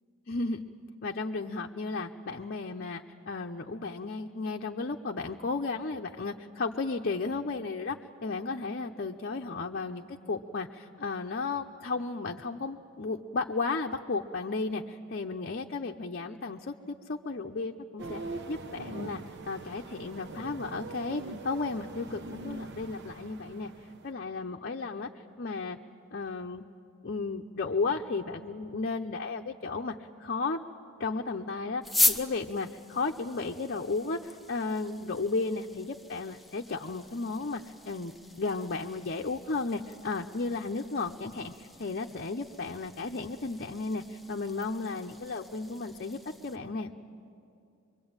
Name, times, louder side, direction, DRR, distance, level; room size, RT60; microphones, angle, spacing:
voice 1, 0.3-0.6 1.0-18.2 18.5-23.7 24.0-25.8 26.1-26.6 27.0-29.9 30.2-30.6 31.0-46.9, left 3 dB, 50° left, 2 dB, 0.8 m, -34 dB
Grey Seal, 18.0-24.1, right 2 dB, 55° right, 1.0 m, -42 dB
sound 1, 31.8-46.6, left 2 dB, ahead, 0.9 m, -38 dB
25.0 x 23.0 x 8.8 m, 2.6 s
head